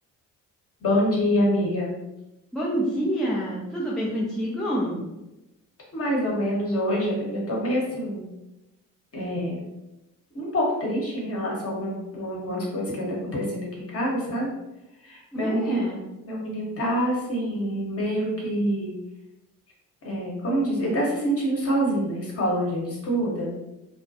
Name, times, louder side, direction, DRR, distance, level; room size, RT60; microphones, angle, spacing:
voice 1, 0.8-2.0 5.9-8.3 9.1-9.6 10.3-14.5 15.0-15.9 16.2-19.0 20.0-23.5, equal, 30° left, -3 dB, 1.0 m, -26 dB
voice 2, 2.5-5.1 15.3-16.0, equal, ahead, -6 dB, 0.3 m, -27 dB
2.2 x 2.1 x 2.7 m, 0.97 s
figure-of-eight pair, 50°, 46 cm